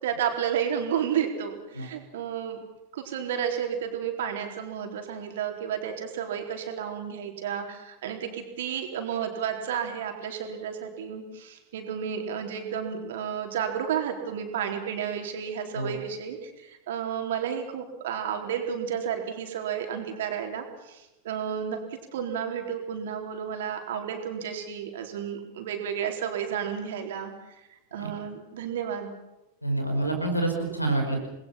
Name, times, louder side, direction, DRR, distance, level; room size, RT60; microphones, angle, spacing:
voice 1, 0.0-2.6 2.9-21.8 22.1-27.3 27.9-29.1, right 8 dB, 55° right, 4 dB, 4.1 m, -32 dB
voice 2, 29.6-31.2, right 2 dB, 85° left, 4 dB, 5.2 m, -27 dB
29.0 x 21.0 x 5.9 m, 0.94 s
figure-of-eight pair, 90°, 0 cm